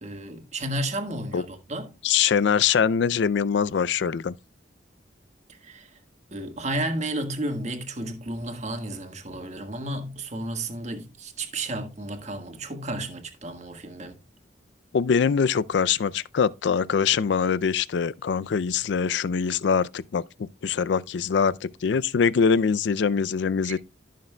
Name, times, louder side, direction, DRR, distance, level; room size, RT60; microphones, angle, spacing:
voice 1, 0.0-1.9 5.6-5.9 6.3-14.2 23.6-23.8, right 1 dB, 40° right, 1.6 m, -32 dB
voice 2, 2.0-4.3 14.9-23.8, left 6 dB, 75° left, 0.4 m, -23 dB
14.5 x 6.6 x 2.2 m
head